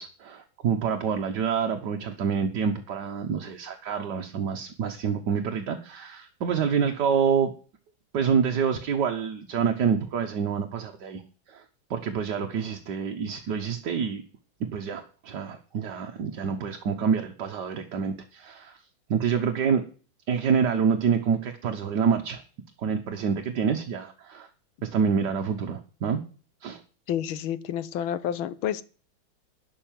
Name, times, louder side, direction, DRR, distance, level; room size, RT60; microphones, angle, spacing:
voice 1, 0.0-7.5 8.1-11.2 11.5-11.6 11.9-14.2 14.7-18.8 19.1-19.8 20.3-22.4 22.8-24.5 24.8-26.2 26.6-26.8, right 6 dB, 60° right, 1.6 m, -27 dB
voice 2, 27.1-28.8, left 10 dB, 85° left, 1.6 m, -29 dB
12.0 x 5.7 x 9.2 m
omnidirectional pair, 2.2 m